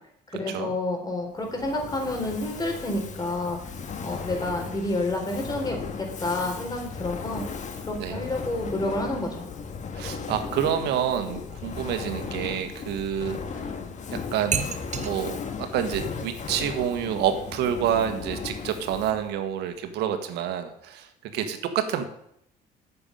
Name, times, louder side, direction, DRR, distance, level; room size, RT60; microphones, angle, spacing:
voice 1, 0.3-3.6 4.0-7.4 7.8-9.5, left 2 dB, 25° left, 2 dB, 4.3 m, -29 dB
Fire, 1.4-19.3, left 5 dB, 45° left, 1.7 m, -36 dB
voice 2, 9.9-13.7 14.1-14.6 14.9-22.0, right 9 dB, 85° right, 7 dB, 1.6 m, -28 dB
sound 1, 14.3-19.3, right 7 dB, 45° right, 1.2 m, -37 dB
9.8 x 7.0 x 9.2 m, 0.73 s
cardioid pair, 110°, 17 cm